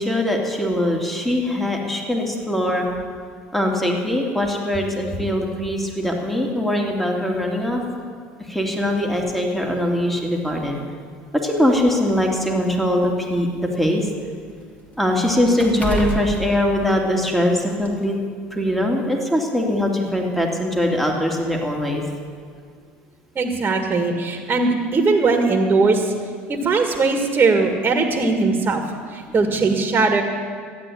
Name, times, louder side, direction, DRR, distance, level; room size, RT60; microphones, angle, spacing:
voice 1, 0.0-2.9 3.5-7.8 8.4-10.8 11.3-14.1 15.0-18.2 18.5-22.0 29.4-29.5, left 1 dB, ahead, 0 dB, 2.5 m, -22 dB
sound 1, 8.8-9.0 10.0-10.1 10.6-10.7 11.6-13.6 14.0-17.4 17.8-18.0, left 1 dB, 20° left, 3.0 m, -31 dB
voice 2, 23.4-26.1 26.5-28.8 29.1-30.2, right 3 dB, 30° right, 3 dB, 1.8 m, -19 dB
13.5 x 9.1 x 8.5 m, 2.1 s
hypercardioid pair, 80°, 6 cm